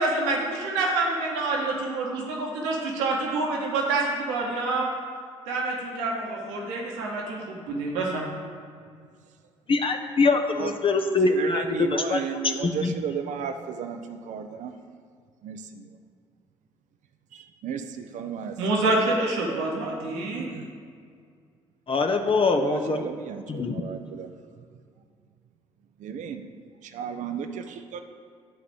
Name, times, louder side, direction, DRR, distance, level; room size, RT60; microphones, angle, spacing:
voice 1, 0.0-4.9 5.5-8.3 18.6-20.5, right 2 dB, 75° right, -2 dB, 1.7 m, -27 dB
voice 2, 9.7-12.2 12.6-12.9 21.9-23.0 23.5-23.8, left 3 dB, 35° left, 5 dB, 0.8 m, -23 dB
voice 3, 11.3-14.7 15.4-15.9 17.3-18.6 18.8-19.9 20.3-20.7 22.5-24.3 26.0-26.5 26.9-28.0, right 7 dB, 55° right, 7 dB, 0.7 m, -34 dB
11.0 x 4.1 x 7.7 m, 2.1 s
figure-of-eight pair, 45°, 15 cm